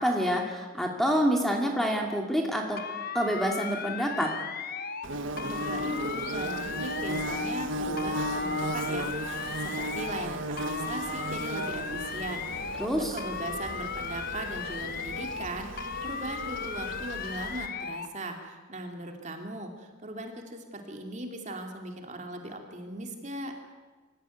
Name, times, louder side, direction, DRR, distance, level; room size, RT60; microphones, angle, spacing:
voice 1, 0.0-2.8 3.1-4.3 12.8-13.1, equal, ahead, 1 dB, 2.4 m, -27 dB
sound 1, 2.8-5.1 5.4-7.7 8.0-10.3 10.6-12.9 13.2-15.5 15.8-18.1, left 6 dB, 45° left, 1.2 m, -37 dB
Bird / Buzz, 5.0-17.7, right 1 dB, 70° right, 1.5 m, -35 dB
voice 2, 5.4-23.5, right 1 dB, 35° right, 3 dB, 2.9 m, -39 dB
25.5 x 15.0 x 9.4 m, 1.3 s
head